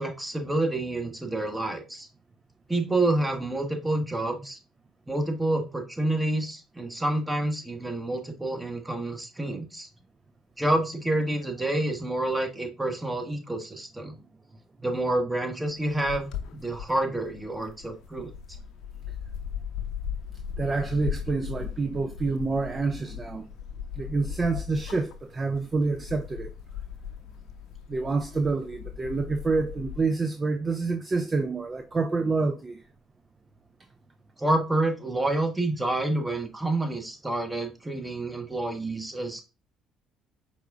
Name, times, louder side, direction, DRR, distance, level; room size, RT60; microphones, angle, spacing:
voice 1, 0.0-2.1 2.7-4.6 5.1-9.9 10.6-14.1 14.8-18.3 34.4-39.4, right 2 dB, 10° right, 1.1 m, -28 dB
sound 1, 15.6-30.0, left 8 dB, 65° left, 0.6 m, -38 dB
voice 2, 20.6-23.5 24.0-26.5 27.9-32.8, right 3 dB, 30° right, 0.4 m, -27 dB
4.7 x 3.4 x 2.4 m
hypercardioid pair, 60°, 0 cm